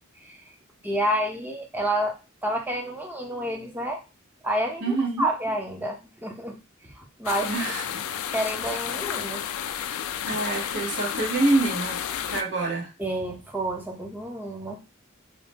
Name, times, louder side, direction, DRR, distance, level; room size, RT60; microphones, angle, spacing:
voice 1, 0.8-2.2 2.4-4.0 4.4-6.6 6.8-7.5 8.3-9.4 13.0-14.8, right 1 dB, 10° right, 1 dB, 0.5 m, -29 dB
voice 2, 4.8-5.3 7.4-8.0 10.3-12.0 12.3-12.9, right 3 dB, 55° right, -2 dB, 0.9 m, -26 dB
sound 1, 7.3-12.4, left 9 dB, 80° left, 0.3 m, -31 dB
2.6 x 2.1 x 3.3 m, 0.30 s
head